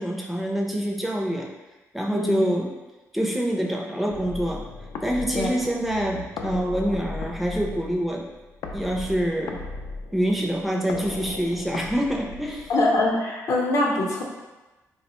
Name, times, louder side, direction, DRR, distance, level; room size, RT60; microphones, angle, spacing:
voice 1, 0.0-1.5 1.9-2.7 3.1-4.7 5.0-8.3 8.7-9.6 10.1-12.7, equal, ahead, -1 dB, 0.4 m, -26 dB
sound 1, 4.1-13.1, left 3 dB, 90° left, 0.3 m, -37 dB
voice 2, 12.7-14.2, left 2 dB, 60° left, -2 dB, 0.7 m, -23 dB
3.8 x 2.1 x 2.9 m, 1.1 s
cardioid pair, 150°, 6 cm